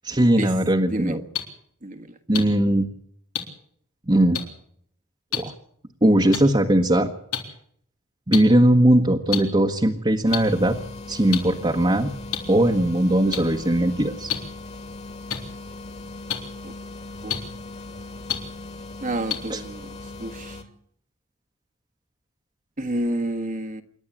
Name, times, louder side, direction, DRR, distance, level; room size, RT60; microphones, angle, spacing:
voice 1, 0.0-1.2 2.3-2.9 4.1-4.4 5.4-5.5 6.0-7.1 8.3-10.8 11.1-12.1 12.5-14.3 19.5-19.6, right 1 dB, 25° right, 1 dB, 1.4 m, -19 dB
sound 1, 1.3-1.4 2.3-2.4 3.3-3.4 4.3-4.4 5.3-5.4 6.3-6.4 7.3-7.4 8.3-8.4 9.3-9.4 10.3-10.4 11.3-11.4 12.3-12.4 13.3-13.4 14.3-14.4 15.3-15.4 16.3-16.4 17.3-17.4 18.3-18.4 19.3-19.4, left 9 dB, 90° left, 4.0 m, -25 dB
voice 2, 1.8-2.1 16.6-16.7 17.2-17.4 19.0-20.6 22.8-23.8, right 1 dB, 40° right, 5 dB, 1.5 m, -29 dB
sound 2, 10.3-20.6, left 2 dB, 30° left, 2.4 m, -39 dB
27.5 x 11.5 x 8.7 m, 0.65 s
head